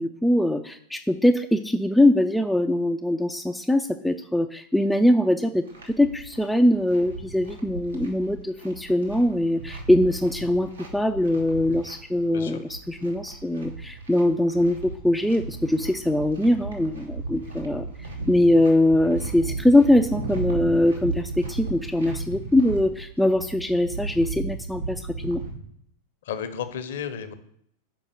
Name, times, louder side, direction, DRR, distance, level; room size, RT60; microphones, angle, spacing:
voice 1, 0.0-25.4, left 1 dB, 5° left, 5 dB, 0.4 m, -22 dB
sound 1, 5.7-25.6, right 3 dB, 85° right, 1.9 m, -36 dB
voice 2, 12.3-12.6 26.2-27.3, left 8 dB, 60° left, 10 dB, 0.9 m, -33 dB
6.1 x 5.3 x 6.7 m, 0.72 s
figure-of-eight pair, 90°, 0 cm